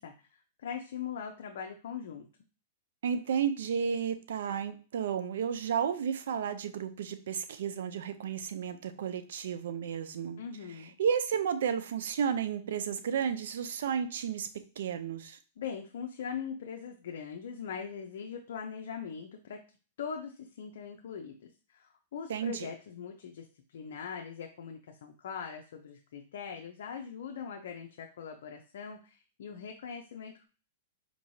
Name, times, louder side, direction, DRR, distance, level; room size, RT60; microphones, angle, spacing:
voice 1, 0.0-2.3 10.4-10.9 15.6-19.6 20.0-21.4 21.7-30.5, left 7 dB, 75° left, 3 dB, 0.6 m, -41 dB
voice 2, 3.0-10.4 11.0-14.5 14.8-15.4 22.3-22.7, right 7 dB, 75° right, 10 dB, 0.5 m, -32 dB
4.7 x 3.0 x 2.7 m, 0.35 s
hypercardioid pair, 135°, 0 cm